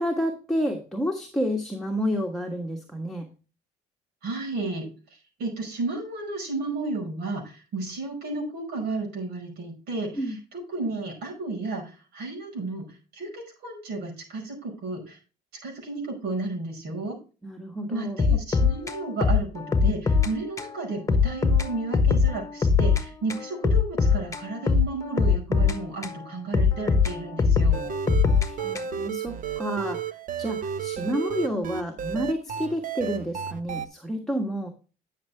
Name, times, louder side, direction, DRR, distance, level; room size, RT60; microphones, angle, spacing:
voice 1, 0.0-3.3 10.1-10.4 17.4-18.2 28.4-34.7, equal, ahead, 1 dB, 1.5 m, -30 dB
voice 2, 4.2-4.9 5.4-10.1 10.7-11.8 12.1-12.9 13.1-15.2 15.6-17.2 17.9-27.9, right 3 dB, 70° right, -1 dB, 5.2 m, -32 dB
sound 1, 18.2-20.3 20.6-20.7 21.1-23.0 23.3-26.2 26.5-29.1, left 5 dB, 20° left, 1.2 m, -22 dB
sound 2, 27.7-33.9, right 8 dB, 50° right, 0.8 m, -32 dB
10.5 x 6.6 x 3.4 m, 0.34 s
cardioid pair, 110°, 17 cm